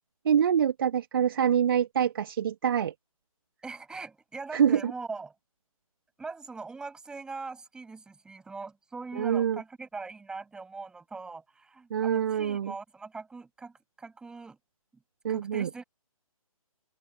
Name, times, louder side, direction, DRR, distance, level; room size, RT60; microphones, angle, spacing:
voice 1, 0.2-2.9 4.5-4.9 9.2-9.6 11.9-12.7 15.2-15.7, right 8 dB, 40° right, 2.6 m, -25 dB
voice 2, 3.6-5.3 6.2-14.6 15.3-15.8, right 4 dB, 5° right, 7.1 m, -41 dB
figure-of-eight pair, 145°, 19 cm